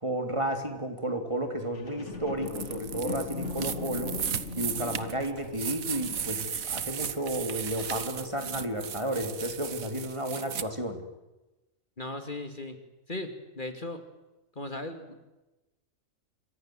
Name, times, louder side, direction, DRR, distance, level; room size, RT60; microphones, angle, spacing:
voice 1, 0.0-4.1 4.6-11.0, right 1 dB, 20° right, 6 dB, 3.4 m, -32 dB
sound 1, 1.7-9.2 9.7-9.8, left 4 dB, 60° left, 3.1 m, -41 dB
sound 2, 2.5-10.6, right 8 dB, 90° right, 1.7 m, -36 dB
voice 2, 12.0-12.8 13.1-14.0 14.6-15.1, left 2 dB, 35° left, 7 dB, 2.7 m, -37 dB
27.5 x 25.0 x 7.9 m, 1.0 s
omnidirectional pair, 1.4 m